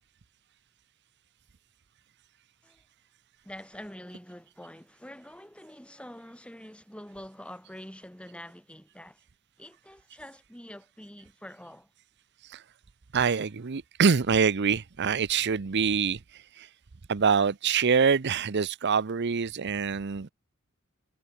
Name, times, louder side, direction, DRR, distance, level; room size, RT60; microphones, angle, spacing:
voice 1, 3.4-9.2 9.6-11.9, left 1 dB, 5° left, 3.4 m, -46 dB
voice 2, 13.1-16.7 17.1-20.3, right 6 dB, 55° right, 0.7 m, -25 dB
head